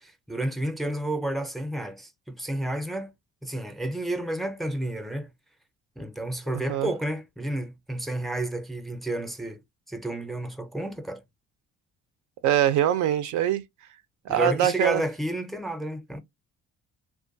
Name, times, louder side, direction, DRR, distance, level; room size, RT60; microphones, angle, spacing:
voice 1, 0.0-3.1 3.4-5.3 6.0-9.6 9.9-11.2 14.3-16.2, right 1 dB, ahead, 0.5 m, -31 dB
voice 2, 12.4-13.6 14.3-15.0, right 11 dB, 75° right, 0.4 m, -23 dB
2.5 x 2.3 x 2.5 m
cardioid pair, 90°, 30 cm